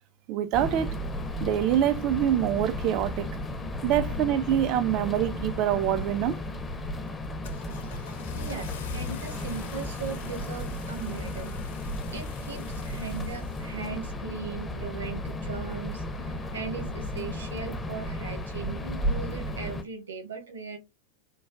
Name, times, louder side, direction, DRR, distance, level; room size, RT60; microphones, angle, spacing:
voice 1, 0.3-1.0 1.4-3.3 3.8-6.4, right 11 dB, 40° right, 0.3 m, -25 dB
sound 1, 0.5-19.8, left 1 dB, 15° left, 0.5 m, -34 dB
Car / Engine starting, 6.3-6.6 7.1-14.0, left 5 dB, 55° left, 0.6 m, -42 dB
voice 2, 8.0-11.6 12.1-20.8, right 6 dB, 65° right, 1.0 m, -38 dB
4.5 x 2.1 x 2.3 m
figure-of-eight pair, 90°, 0 cm